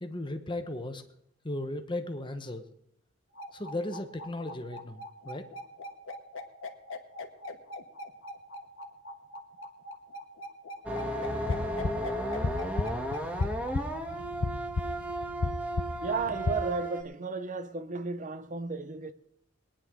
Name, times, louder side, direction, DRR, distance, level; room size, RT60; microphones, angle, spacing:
voice 1, 0.0-1.0 1.4-2.6 3.5-5.5, left 1 dB, 25° left, 1.1 m, -36 dB
sound 1, 3.3-14.0, left 1 dB, 85° left, 1.4 m, -42 dB
sound 2, 10.8-17.0, right 1 dB, 10° right, 1.4 m, -34 dB
sound 3, 11.2-16.5, left 3 dB, 70° left, 0.7 m, -34 dB
voice 2, 16.0-19.1, right 3 dB, 40° right, 0.8 m, -34 dB
20.5 x 10.0 x 3.8 m
head